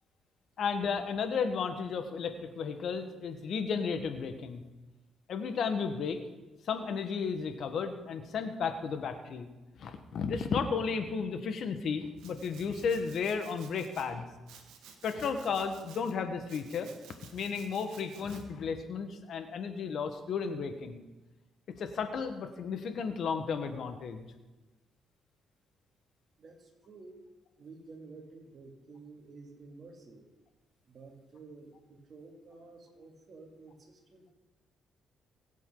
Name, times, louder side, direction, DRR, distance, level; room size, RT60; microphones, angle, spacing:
voice 1, 0.6-4.6 5.3-6.2 6.6-9.5 9.8-14.3 15.0-16.9 17.3-21.0 21.8-24.2, left 5 dB, 65° left, 7 dB, 1.4 m, -33 dB
Domestic sounds home sounds, 12.2-14.1 14.5-16.1 16.5-18.4, right 7 dB, 90° right, 1.7 m, -55 dB
voice 2, 26.4-27.2 27.6-30.3 30.9-34.3, right 3 dB, 50° right, 2 dB, 2.7 m, -51 dB
21.5 x 8.3 x 3.9 m, 1.1 s
cardioid pair, 90°, 0 cm